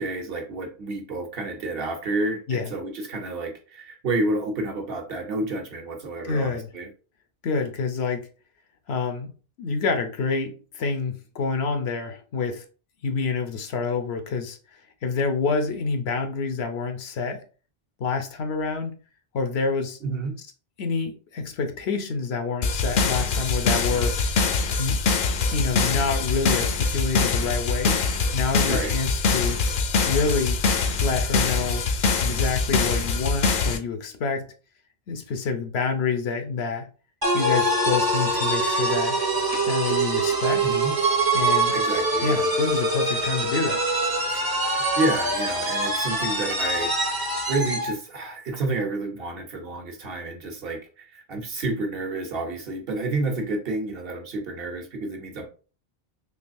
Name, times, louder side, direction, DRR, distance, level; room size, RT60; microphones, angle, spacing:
voice 1, 0.0-6.9 20.0-20.3 28.6-29.0 40.6-40.9 41.7-42.5 44.3-47.2 47.5-55.4, right 2 dB, 65° right, 1.1 m, -30 dB
voice 2, 6.2-6.7 7.4-8.3 8.9-9.3 9.6-12.6 13.0-14.6 15.0-17.4 18.0-18.9 19.3-20.0 20.8-24.3 24.8-25.0 25.5-28.0 28.3-29.6 30.0-30.6 31.0-31.9 32.2-34.5 35.1-36.9 37.3-39.2 39.7-40.6 41.3-41.8 42.2-43.8, left 4 dB, 85° left, 1.0 m, -27 dB
sound 1, 22.6-33.8, left 4 dB, 60° left, 0.7 m, -23 dB
sound 2, 37.2-48.0, right 2 dB, 25° right, 0.6 m, -24 dB
3.8 x 3.1 x 2.6 m
omnidirectional pair, 1.0 m